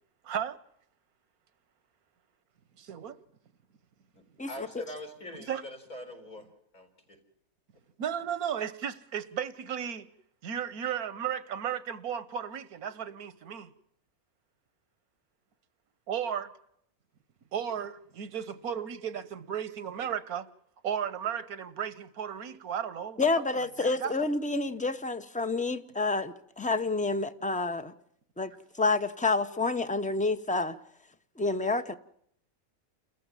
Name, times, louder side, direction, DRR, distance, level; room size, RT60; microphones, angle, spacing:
voice 1, 0.2-0.6 2.8-3.1 5.5-5.6 8.0-10.1 10.4-13.7 16.1-16.5 17.5-20.5 20.8-23.2 23.8-24.1, right 8 dB, 80° right, 1.5 m, -34 dB
voice 2, 4.1-7.2, left 1 dB, 80° left, 4.7 m, -44 dB
voice 3, 23.2-27.9 28.4-30.8 31.4-31.9, left 3 dB, 5° left, 0.6 m, -29 dB
29.0 x 14.5 x 7.2 m
omnidirectional pair, 1.5 m